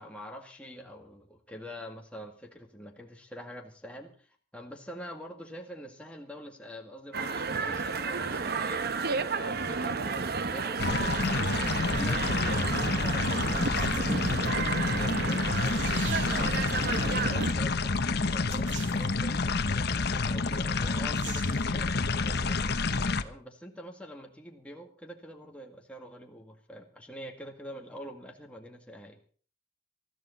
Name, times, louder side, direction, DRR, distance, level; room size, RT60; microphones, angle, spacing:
voice 1, 0.0-4.3 4.5-11.4 11.8-14.3 14.9-15.9 16.5-22.7 23.2-29.2, equal, 5° left, 1 dB, 2.1 m, -45 dB
sound 1, 7.1-17.5, right 4 dB, 55° right, 1.0 m, -31 dB
sound 2, 10.8-23.2, left 3 dB, 60° left, 1.0 m, -28 dB
sound 3, 13.7-14.4 15.3-15.4 15.6-16.7 18.5-19.2 21.2-21.7, right 5 dB, 75° right, 2.7 m, -44 dB
20.5 x 14.0 x 4.2 m, 0.41 s
head